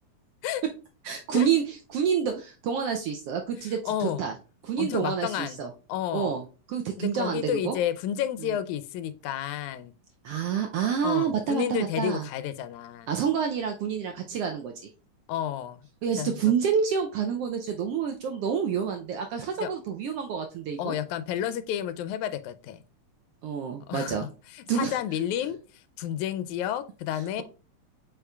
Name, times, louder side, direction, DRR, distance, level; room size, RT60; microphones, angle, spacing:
voice 1, 1.0-4.3 4.6-5.7 6.1-6.4 6.7-7.8 10.2-12.3 13.1-14.7 16.0-20.9 23.4-24.3 24.7-25.0, right 7 dB, 80° right, 4 dB, 1.4 m, -28 dB
voice 2, 3.6-4.2 4.8-5.6 5.9-6.4 7.0-9.9 11.0-13.1 15.3-15.8 16.2-16.4 19.6-19.7 20.8-22.8 23.9-27.4, left 10 dB, 85° left, 12 dB, 2.0 m, -31 dB
8.4 x 5.1 x 2.3 m, 0.35 s
omnidirectional pair, 3.3 m